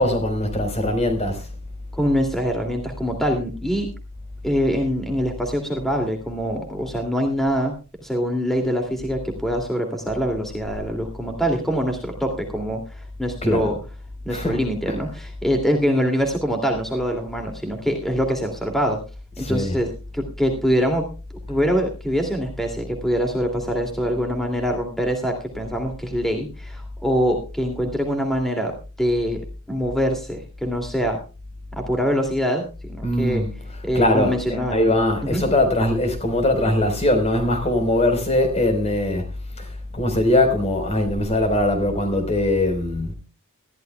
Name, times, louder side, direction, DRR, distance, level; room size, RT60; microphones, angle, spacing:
voice 1, 0.0-1.5 13.4-13.7 14.3-15.0 19.4-19.8 33.0-39.3 39.6-43.1, left 1 dB, 30° left, 4.1 m, -21 dB
voice 2, 1.9-3.9 4.4-7.7 8.0-13.8 14.3-19.0 19.4-19.9 20.1-21.0 21.5-28.7 29.0-29.4 29.7-31.2 31.8-33.4 33.8-34.9 35.2-35.4, equal, ahead, 2.4 m, -24 dB
20.5 x 14.5 x 2.2 m
head